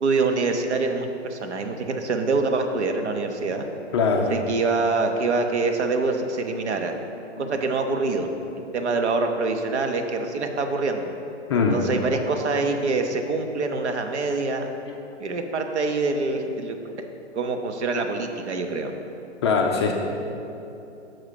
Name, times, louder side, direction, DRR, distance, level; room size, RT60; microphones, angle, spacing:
voice 1, 0.0-3.7 4.3-7.0 7.4-11.1 11.5-14.7 15.2-16.8 17.3-18.9, right 3 dB, 70° right, 5 dB, 0.9 m, -25 dB
voice 2, 3.9-4.3 7.4-7.5 11.5-11.9 14.9-15.0 19.4-19.9, left 4 dB, 25° left, 1 dB, 0.4 m, -22 dB
6.4 x 4.8 x 6.6 m, 2.9 s
hypercardioid pair, 130°, 36 cm